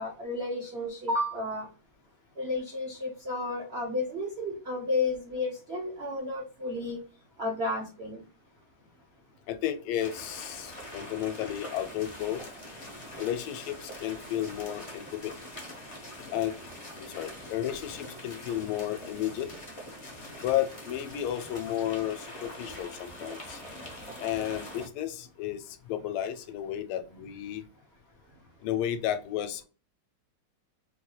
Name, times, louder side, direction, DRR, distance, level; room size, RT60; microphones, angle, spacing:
voice 1, 0.0-1.7 2.4-7.0 7.4-8.2, left 2 dB, 75° right, -2 dB, 0.5 m, -32 dB
voice 2, 9.5-12.4 13.2-15.3 16.3-16.6 17.0-19.5 20.4-23.6 24.2-27.6 28.6-29.6, left 11 dB, 80° left, 10 dB, 1.4 m, -33 dB
sound 1, 10.0-24.9, equal, 60° left, 0.3 m, -44 dB
4.3 x 2.3 x 2.9 m, 0.35 s
omnidirectional pair, 2.4 m